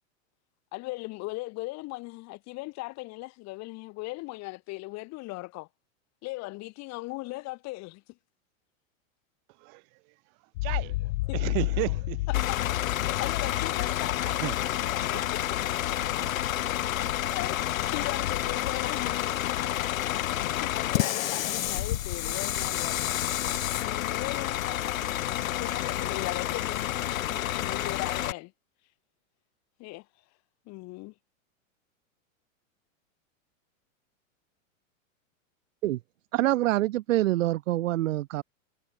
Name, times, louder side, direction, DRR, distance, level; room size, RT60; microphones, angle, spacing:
voice 1, 0.7-5.7 6.2-8.0 11.3-11.4 12.3-12.6 13.0-14.5 14.9-16.0 17.3-17.6 17.9-19.8 20.4-23.2 23.7-28.5 29.8-30.1 30.7-31.1, left 22 dB, 40° left, 5.3 m, -38 dB
sound 1, 10.5-15.4, left 20 dB, 60° left, 0.6 m, -31 dB
voice 2, 10.6-12.3 14.4-15.3, right 40 dB or more, 45° right, 2.4 m, -34 dB
Bus / Idling, 12.3-28.3, left 13 dB, 80° left, 2.7 m, -29 dB
voice 3, 36.3-38.4, right 15 dB, 70° right, 1.9 m, -25 dB
supercardioid pair, 140°, 40 cm